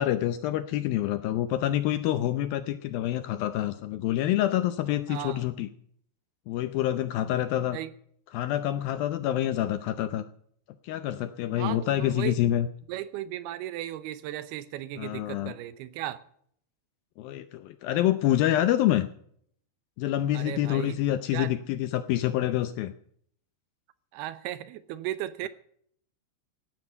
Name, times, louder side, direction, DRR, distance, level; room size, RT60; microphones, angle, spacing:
voice 1, 0.0-5.7 6.5-7.8 8.3-10.3 10.8-12.7 15.0-15.5 17.2-19.1 20.0-22.9, left 13 dB, 85° left, 11 dB, 2.1 m, -27 dB
voice 2, 5.1-5.4 7.7-7.9 11.6-12.4 12.9-16.2 20.3-21.0 21.3-21.5 24.1-25.5, right 13 dB, 75° right, 14 dB, 2.4 m, -36 dB
16.5 x 12.0 x 5.7 m, 0.63 s
omnidirectional pair, 5.0 m